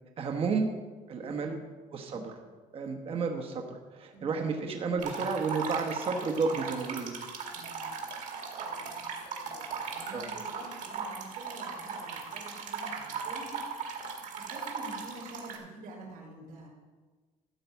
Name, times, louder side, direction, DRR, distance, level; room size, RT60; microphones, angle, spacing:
voice 1, 0.2-0.7 1.1-1.6 1.9-2.4 2.7-7.2 10.1-10.3, right 4 dB, 40° right, 3 dB, 1.1 m, -32 dB
voice 2, 1.2-1.5 2.0-2.2 3.1-3.3 4.1-4.5 4.8-5.0 7.5-8.3 8.5-13.5 14.4-16.7, right 2 dB, 75° right, -3 dB, 4.1 m, -49 dB
sound 1, 5.0-15.6, right 5 dB, 60° right, 1.8 m, -38 dB
13.5 x 4.7 x 8.2 m, 1.3 s
cardioid pair, 160°, 15 cm